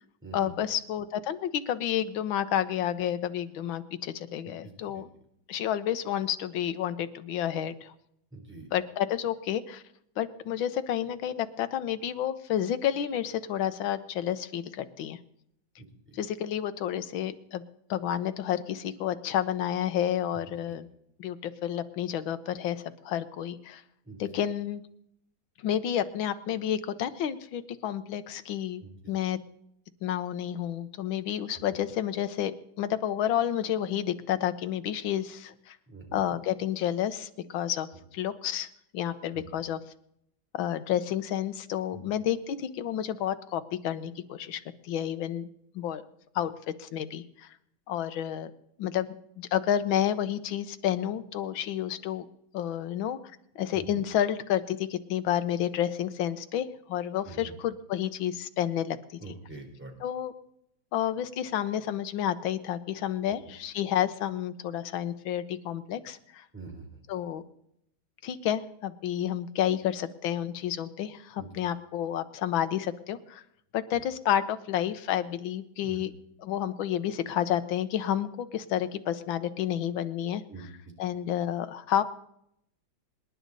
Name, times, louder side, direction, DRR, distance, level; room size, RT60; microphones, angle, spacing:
voice 1, 0.3-5.1 5.5-7.9 8.7-9.8 10.2-15.2 16.1-17.6 17.9-20.9 21.2-23.8 24.2-24.8 25.6-28.8 29.1-29.4 30.0-32.5 32.8-35.8 36.1-38.7 38.9-39.8 40.5-45.5 45.7-46.0 46.3-47.5 47.9-48.5 48.8-49.1 49.4-52.2 52.5-53.2 53.5-59.0 59.3-59.4 60.0-60.3 60.9-66.4 67.1-67.4 68.2-73.4 73.7-76.1 76.4-80.4 81.0-82.0, left 10 dB, 75° left, 11 dB, 1.6 m, -30 dB
voice 2, 4.5-5.0 8.3-8.7 15.8-16.2 20.7-20.8 24.0-24.2 28.8-28.9 35.9-36.2 39.3-39.6 41.9-42.0 53.7-54.0 57.2-57.5 59.2-59.9 66.5-67.0 71.4-71.5 75.8-76.0 80.5-80.7 81.0-81.1, right 3 dB, 5° right, 0 dB, 3.2 m, -45 dB
26.0 x 10.5 x 4.0 m, 0.75 s
omnidirectional pair, 2.2 m